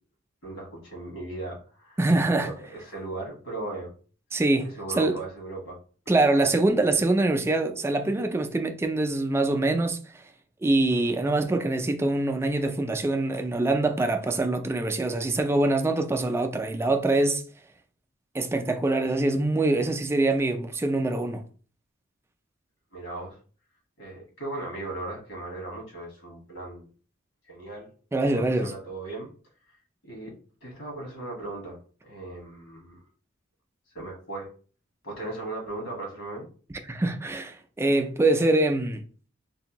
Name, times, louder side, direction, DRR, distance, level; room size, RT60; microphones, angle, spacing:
voice 1, 0.4-2.0 2.4-3.9 4.6-5.8 22.9-23.4 24.0-26.9 27.4-27.9 28.3-29.3 30.0-30.3 30.6-33.0 33.9-34.5 35.0-36.5, right 2 dB, 80° left, 1.5 m, -37 dB
voice 2, 2.0-2.5 4.3-5.2 6.1-10.0 10.6-17.4 18.3-21.4 28.1-28.7 36.9-39.0, right 2 dB, 15° right, 0.3 m, -24 dB
3.4 x 2.5 x 2.9 m
head